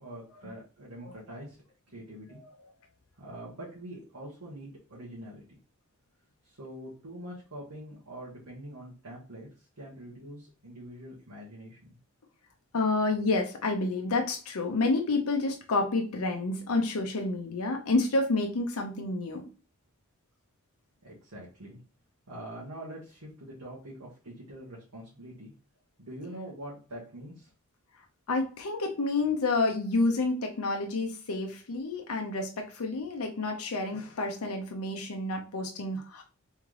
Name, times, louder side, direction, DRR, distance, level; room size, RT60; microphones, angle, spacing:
voice 1, 0.0-1.6 1.9-2.4 3.2-5.4 6.4-11.8 21.0-21.8 22.3-25.5 26.0-27.5, right 1 dB, 90° right, -5 dB, 1.4 m, -44 dB
voice 2, 12.7-19.4 28.3-36.2, left 3 dB, 80° left, 3 dB, 0.6 m, -29 dB
3.6 x 3.2 x 3.7 m, 0.38 s
head